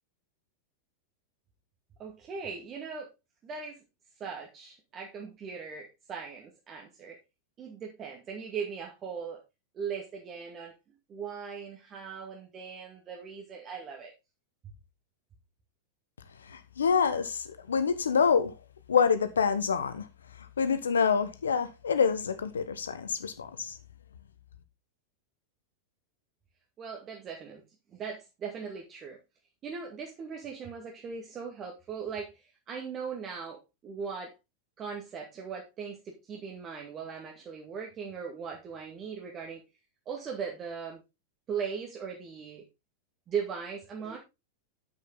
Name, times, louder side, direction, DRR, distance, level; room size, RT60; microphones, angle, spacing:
voice 1, 2.0-3.1 3.4-3.8 4.2-7.2 7.6-9.4 9.7-10.7 11.1-14.1 26.8-27.6 27.9-29.2 29.6-34.3 34.8-39.6 40.1-41.0 41.5-42.7 43.3-44.2, right 6 dB, 30° right, 2.1 m, -39 dB
voice 2, 16.5-18.5 18.9-20.0 20.6-23.7, left 6 dB, 70° left, 1.2 m, -26 dB
9.5 x 7.6 x 3.9 m
figure-of-eight pair, 90°, 0 cm